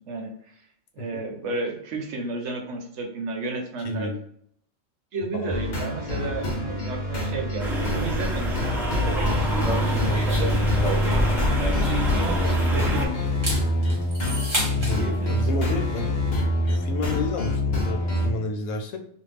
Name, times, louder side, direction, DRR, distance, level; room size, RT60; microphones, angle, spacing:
voice 1, 0.9-4.1 5.1-10.4 12.1-13.1 15.0-15.7, right 3 dB, 70° right, 2 dB, 0.9 m, -33 dB
voice 2, 3.8-4.2 5.3-5.5 12.7-13.0 13.6-13.7 14.6-16.1 16.6-19.0, left 2 dB, 80° left, 4 dB, 1.0 m, -31 dB
sound 1, 5.5-18.3, left 1 dB, 45° left, 0.6 m, -25 dB
sound 2, 7.6-13.1, equal, 5° right, 0.4 m, -27 dB
sound 3, 9.6-12.9 13.3-15.0, right 1 dB, 30° right, 1.0 m, -31 dB
2.5 x 2.3 x 3.2 m, 0.65 s
omnidirectional pair, 1.3 m